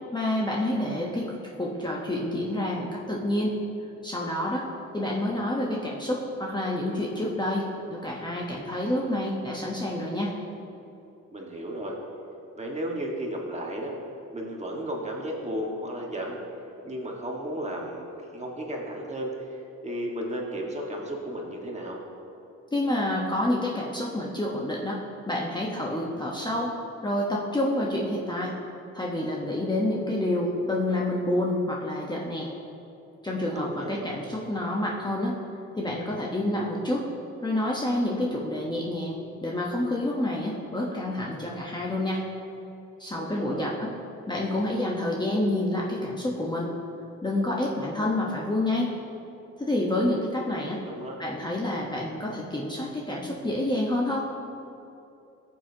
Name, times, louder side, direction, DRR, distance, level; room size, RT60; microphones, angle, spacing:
voice 1, 0.1-3.5 4.0-10.3 22.7-25.0 25.3-26.8 27.0-28.5 28.9-32.5 33.2-35.4 35.8-37.1 37.4-42.2 43.0-43.9 44.3-46.7 47.2-48.9 49.6-50.8 51.2-54.3, left 1 dB, 15° left, -3 dB, 1.1 m, -28 dB
voice 2, 11.3-11.9 12.6-13.9 14.3-16.4 16.8-22.0 33.5-34.0 43.1-43.7 50.5-51.2, equal, 20° right, -1 dB, 1.7 m, -34 dB
14.0 x 7.6 x 2.9 m, 2.8 s
cardioid pair, 90°, 30 cm